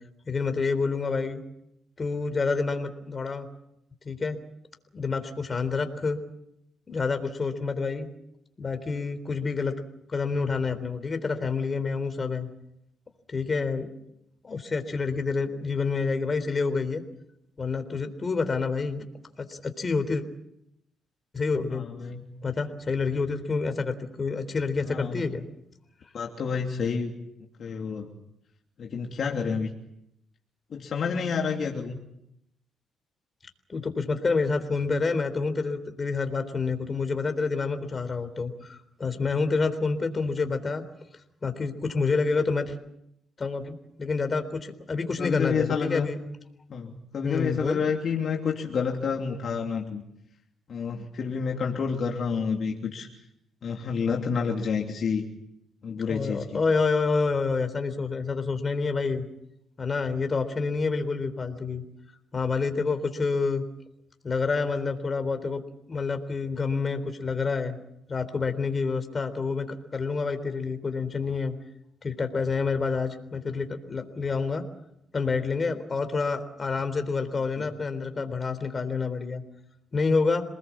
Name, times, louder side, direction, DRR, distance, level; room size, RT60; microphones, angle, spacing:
voice 1, 0.3-1.4 2.0-3.5 4.1-4.4 4.9-6.2 6.9-8.1 8.6-9.7 10.1-12.5 13.3-13.9 14.4-17.0 17.6-19.0 19.5-20.2 21.3-21.8 22.4-25.4 33.7-40.8 41.4-42.8 43.4-46.2 47.2-47.8 56.1-59.3 59.8-61.8 62.3-63.6 64.2-65.6 65.9-67.8 68.1-71.5 72.0-74.6 75.1-79.4 79.9-80.4, left 4 dB, 35° left, 9 dB, 3.7 m, -28 dB
voice 2, 21.7-22.2 24.8-25.2 26.1-27.1 27.6-28.1 28.8-29.7 30.7-32.0 45.2-46.1 46.7-50.0 50.7-53.1 53.6-55.2 55.8-56.6 77.6-77.7, left 6 dB, 55° left, 1 dB, 3.0 m, -29 dB
27.5 x 20.0 x 7.4 m, 0.80 s
cardioid pair, 90°, 0 cm